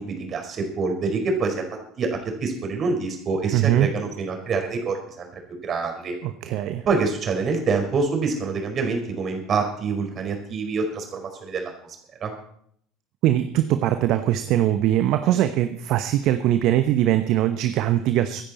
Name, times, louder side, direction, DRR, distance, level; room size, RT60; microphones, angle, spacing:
voice 1, 0.0-1.6 2.0-5.3 5.6-6.2 6.8-11.7 12.2-12.3 15.2-15.4, right 4 dB, 40° right, 3 dB, 4.7 m, -26 dB
voice 2, 3.5-3.9 6.2-6.8 13.2-18.4, right 12 dB, 55° right, 9 dB, 0.9 m, -21 dB
25.0 x 10.0 x 4.2 m, 0.67 s
figure-of-eight pair, 65°, 0 cm